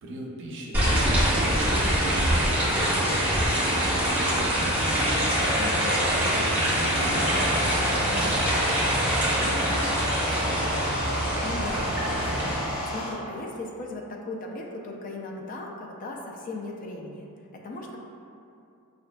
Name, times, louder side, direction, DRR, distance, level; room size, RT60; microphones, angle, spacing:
voice 1, 0.0-3.3 3.8-5.3 6.3-10.9, right 1 dB, 55° right, -1 dB, 0.5 m, -39 dB
sound 1, 0.7-12.6, equal, 10° right, 1.3 m, -24 dB
voice 2, 5.6-6.1 11.4-17.3 17.5-18.0, left 2 dB, 40° left, 0 dB, 0.4 m, -37 dB
sound 2, 6.8-13.1, equal, 80° left, 0.9 m, -32 dB
5.7 x 2.4 x 2.2 m, 2.6 s
head